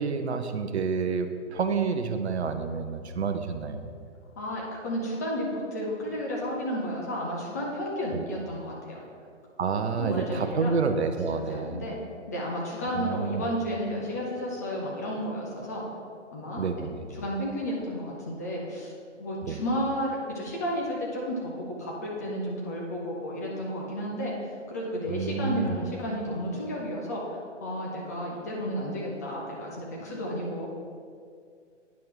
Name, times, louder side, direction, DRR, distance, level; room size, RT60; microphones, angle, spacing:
voice 1, 0.0-3.9 8.1-8.2 9.6-11.8 12.9-13.5 16.6-17.1 19.4-19.6 25.1-25.8, right 5 dB, 60° right, 7 dB, 0.7 m, -29 dB
voice 2, 4.4-9.0 10.0-10.8 11.3-12.0 12.3-15.8 16.3-18.9 19.2-24.3 24.7-30.7, equal, 15° left, -3 dB, 0.4 m, -32 dB
9.4 x 5.7 x 3.2 m, 2.2 s
figure-of-eight pair, 125°, 36 cm